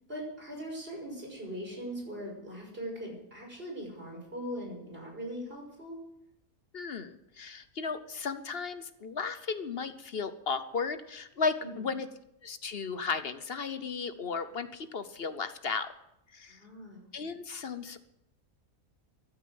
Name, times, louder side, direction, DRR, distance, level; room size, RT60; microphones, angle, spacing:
voice 1, 0.1-6.0 11.6-11.9 16.5-17.1, equal, 40° right, 0 dB, 6.1 m, -40 dB
voice 2, 6.7-12.1 12.4-15.9 16.3-16.6 17.1-18.0, left 5 dB, 50° left, 11 dB, 1.0 m, -35 dB
14.5 x 12.0 x 7.8 m, 0.84 s
omnidirectional pair, 1.5 m